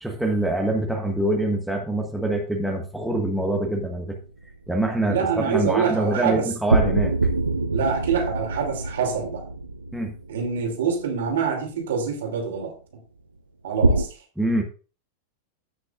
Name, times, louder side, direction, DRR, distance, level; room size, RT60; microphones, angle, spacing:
voice 1, 0.0-4.2 4.7-7.1 9.9-10.1 14.4-14.6, right 1 dB, ahead, 1 dB, 1.5 m, -25 dB
sound 1, 3.8-4.7 6.7-11.1 13.8-14.0, right 2 dB, 80° right, 0.6 m, -24 dB
voice 2, 5.0-6.5 7.7-9.5 10.3-12.8 13.6-14.1, right 6 dB, 60° right, 1 dB, 2.8 m, -25 dB
15.0 x 6.3 x 2.5 m, 0.36 s
figure-of-eight pair, 90°, 0 cm